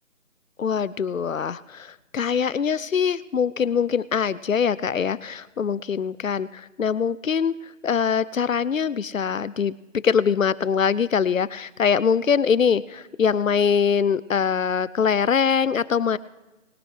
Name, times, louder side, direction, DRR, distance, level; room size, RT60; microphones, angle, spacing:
voice 1, 0.6-7.5 7.8-9.8 10.0-16.2, left 7 dB, 75° left, 19 dB, 0.7 m, -23 dB
21.0 x 10.0 x 3.3 m, 1.1 s
figure-of-eight pair, 175°, 40 cm